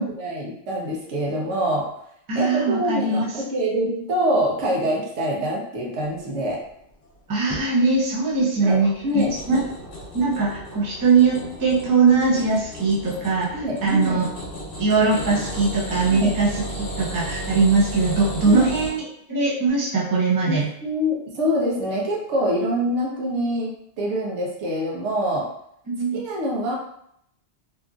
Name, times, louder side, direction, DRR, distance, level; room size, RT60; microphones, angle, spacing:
voice 1, 0.0-1.9 2.3-6.6 8.6-8.8 9.0-9.3 13.5-14.2 16.1-16.3 18.4-18.7 20.5-23.7 24.0-25.5 26.1-26.8, equal, 85° right, -2 dB, 1.0 m, -25 dB
voice 2, 2.3-3.3 3.8-4.1 7.3-9.6 10.1-14.2 14.8-20.7 25.9-26.2, right 4 dB, 25° right, -4 dB, 0.5 m, -21 dB
sound 1, 8.8-18.9, equal, 55° left, 0.9 m, -34 dB
2.9 x 2.4 x 2.3 m, 0.72 s
omnidirectional pair, 1.2 m